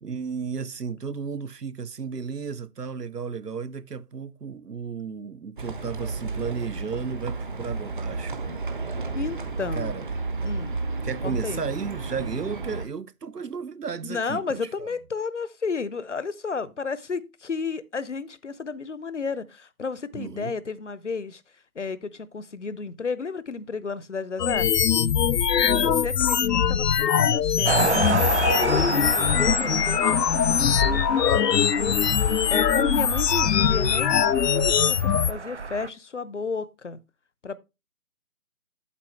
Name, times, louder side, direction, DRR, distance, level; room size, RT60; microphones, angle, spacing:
voice 1, 0.0-8.4 9.7-10.1 11.0-14.9 20.1-20.5 25.5-26.1, right 6 dB, 80° right, 0.9 m, -34 dB
Livestock farm animals working animals, 5.6-12.9, right 3 dB, 30° right, 1.1 m, -32 dB
voice 2, 9.1-9.9 10.4-10.7 11.2-11.6 14.0-21.4 21.7-24.9 25.8-27.8 28.1-34.2 34.5-37.0 37.4-37.6, left 4 dB, 50° left, 0.7 m, -33 dB
sound 1, 24.4-35.3, left 8 dB, 85° left, 0.6 m, -22 dB
sound 2, 27.7-35.9, right 4 dB, 50° right, 0.5 m, -30 dB
8.4 x 8.3 x 3.2 m
figure-of-eight pair, 155°, 47 cm